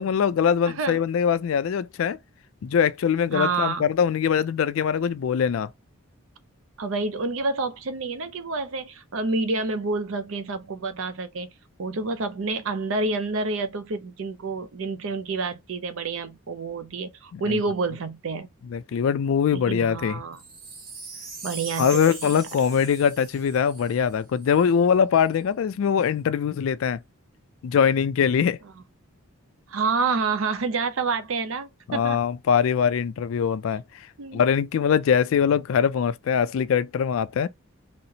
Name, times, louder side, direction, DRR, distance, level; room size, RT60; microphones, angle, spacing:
voice 1, 0.0-2.2 2.6-5.7 17.3-17.6 18.7-20.2 21.8-27.0 27.6-28.6 31.9-33.8 34.3-37.5, left 7 dB, 65° left, 0.3 m, -22 dB
voice 2, 0.7-1.0 3.3-3.9 6.8-11.5 11.8-18.5 19.5-20.4 21.4-22.3 29.7-32.2 34.2-34.4, right 3 dB, 65° right, 0.5 m, -28 dB
Wind chime, 20.3-24.7 25.3-25.4, right 4 dB, 40° right, 0.8 m, -40 dB
4.1 x 2.0 x 2.7 m
head